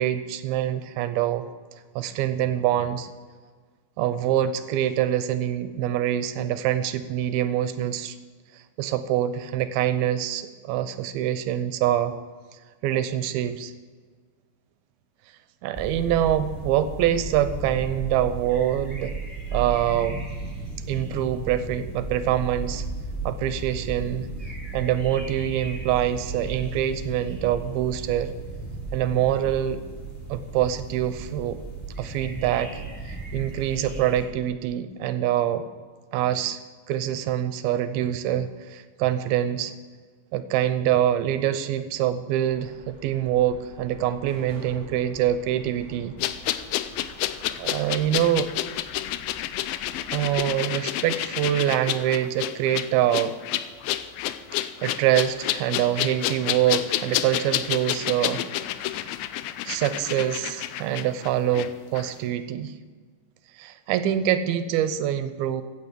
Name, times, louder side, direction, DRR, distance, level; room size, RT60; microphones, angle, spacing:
voice 1, 0.0-1.5 2.0-3.1 4.0-8.2 8.5-12.2 12.8-13.7 15.6-19.1 19.5-20.2 20.9-22.9 23.3-24.3 24.7-28.3 28.9-29.8 30.3-31.6 32.0-35.7 36.1-36.6 36.9-39.7 40.3-46.2 47.6-48.5 50.1-53.3 54.5-58.4 59.0-59.1 59.7-62.8 63.6-65.6, right 11 dB, 80° right, 11 dB, 2.5 m, -25 dB
sound 1, 15.7-34.2, right 3 dB, 5° left, 3.0 m, -35 dB
sound 2, 42.4-50.5, right 3 dB, 60° right, 0.7 m, -48 dB
sound 3, 46.2-61.7 61.9-62.1, left 13 dB, 80° left, 2.3 m, -29 dB
15.5 x 9.0 x 6.7 m, 1.5 s
omnidirectional pair, 4.5 m